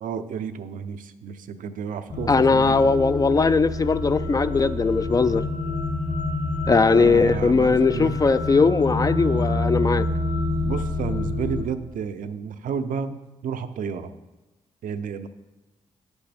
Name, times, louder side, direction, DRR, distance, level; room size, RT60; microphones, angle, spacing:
voice 1, 0.0-2.9 6.7-8.1 10.6-14.1 14.8-15.3, right 7 dB, 70° right, 0.6 m, -31 dB
sound 1, 2.1-11.6, left 2 dB, 60° left, 2.3 m, -27 dB
voice 2, 2.3-5.4 6.7-10.1, left 4 dB, 25° left, 0.3 m, -19 dB
9.6 x 8.1 x 3.4 m
cardioid pair, 75°, 14 cm